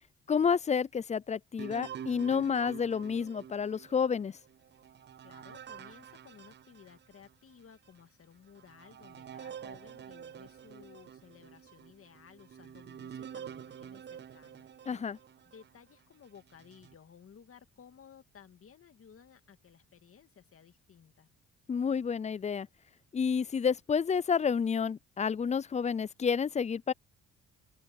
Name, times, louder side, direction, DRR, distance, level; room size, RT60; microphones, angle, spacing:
voice 1, 0.3-4.3 14.9-15.2 21.7-22.7 23.1-26.9, left 6 dB, 25° left, 0.4 m, -30 dB
sound 1, 1.6-7.3 7.9-8.0 8.5-15.7 16.3-16.9, right 9 dB, 35° right, 0.5 m, -48 dB
voice 2, 5.2-14.7 15.4-21.3, left 7 dB, 45° left, 2.3 m, -57 dB
open air
cardioid pair, 90°, 30 cm